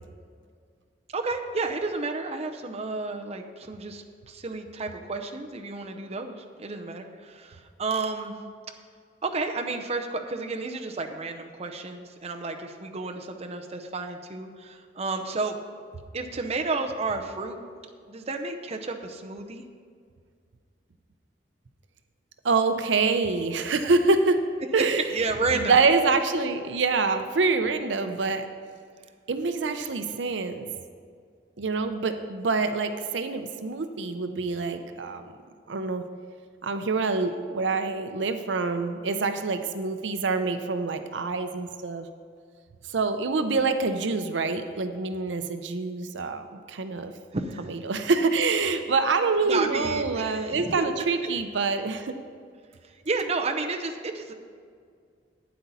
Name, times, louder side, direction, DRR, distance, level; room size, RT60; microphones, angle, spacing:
voice 1, 1.1-8.4 9.2-15.6 16.1-17.6 18.1-19.6 25.1-25.8 47.3-47.7 49.5-50.8 51.2-51.3 52.8-54.3, right 3 dB, 35° right, 4 dB, 0.7 m, -31 dB
voice 2, 22.4-24.4 24.7-28.5 29.3-30.7 31.6-35.2 35.7-36.0 36.6-42.1 42.9-47.1 47.6-52.2, right 4 dB, 80° right, 8 dB, 0.6 m, -26 dB
12.0 x 9.3 x 4.1 m, 2.1 s
head